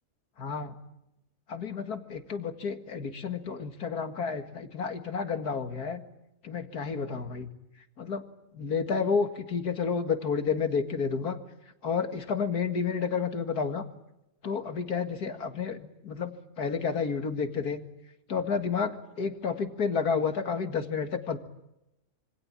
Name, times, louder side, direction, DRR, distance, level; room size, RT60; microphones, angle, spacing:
voice 1, 0.4-0.8 1.5-6.0 6.4-7.5 8.0-8.2 8.5-11.4 11.8-13.8 14.4-17.8 18.3-21.4, left 5 dB, 90° left, 8 dB, 2.5 m, -30 dB
27.0 x 24.5 x 8.9 m, 0.90 s
omnidirectional pair, 1.6 m